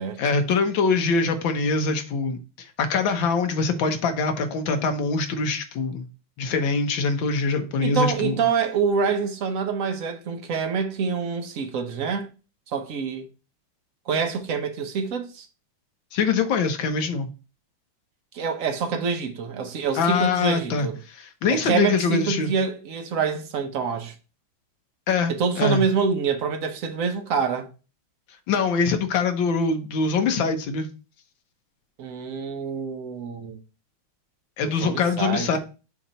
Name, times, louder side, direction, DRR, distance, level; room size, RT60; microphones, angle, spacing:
voice 1, 0.2-6.1 6.4-8.4 16.1-17.3 19.9-22.5 25.1-25.8 28.5-30.9 34.6-35.6, left 4 dB, 70° left, 1.6 m, -24 dB
voice 2, 7.8-12.3 12.7-13.3 14.1-15.5 18.3-21.0 21.5-24.1 25.3-27.7 32.0-33.6 34.6-35.6, right 6 dB, 60° right, 0.9 m, -26 dB
7.0 x 2.9 x 5.4 m
omnidirectional pair, 2.3 m